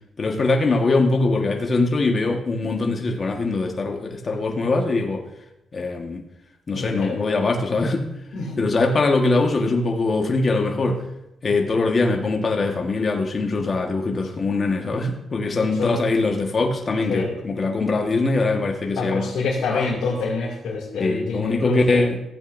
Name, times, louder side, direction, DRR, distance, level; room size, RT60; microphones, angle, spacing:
voice 1, 0.2-5.2 5.7-6.2 6.7-8.1 8.6-11.0 11.4-19.3 19.7-19.9 21.0-22.2, left 3 dB, 40° left, 2 dB, 1.4 m, -22 dB
voice 2, 6.7-7.2 8.3-8.6 15.8-15.9 17.1-17.3 19.0-22.0, left 4 dB, 80° left, -5 dB, 2.4 m, -26 dB
15.0 x 8.4 x 2.6 m, 0.89 s
cardioid pair, 85°, 0 cm